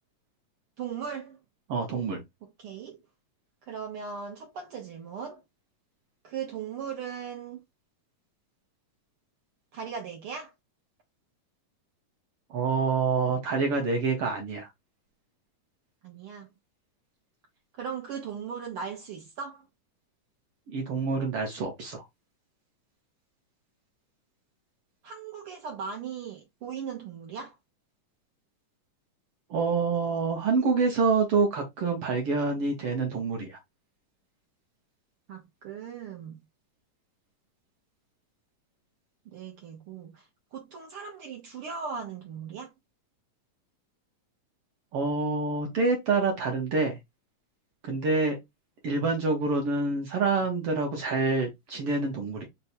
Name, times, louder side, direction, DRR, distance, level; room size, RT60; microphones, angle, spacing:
voice 1, 0.8-1.4 2.4-3.0 3.6-5.4 6.2-7.6 9.7-10.5 16.0-16.5 17.8-19.6 25.0-27.6 35.3-36.4 39.2-42.7, right 6 dB, 85° right, 1.2 m, -38 dB
voice 2, 1.7-2.2 12.5-14.7 20.7-22.0 29.5-33.6 44.9-47.0 47.8-48.4 48.8-52.5, right 4 dB, 65° right, 1.4 m, -27 dB
5.2 x 2.2 x 4.3 m
omnidirectional pair, 3.8 m